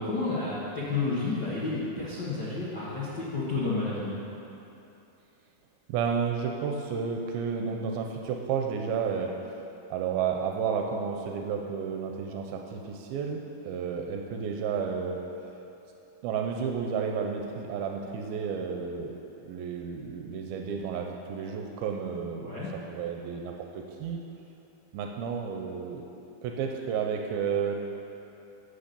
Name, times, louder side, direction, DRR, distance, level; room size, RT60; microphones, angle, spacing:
voice 1, 0.0-4.2 22.4-22.7, left 3 dB, 65° left, -9 dB, 1.0 m, -31 dB
voice 2, 5.9-9.3 9.9-15.2 16.2-19.1 19.5-22.5 22.9-24.2 24.9-26.0 26.4-27.8, right 6 dB, 85° right, 2 dB, 2.5 m, -31 dB
8.3 x 7.9 x 6.8 m, 2.8 s
omnidirectional pair, 4.4 m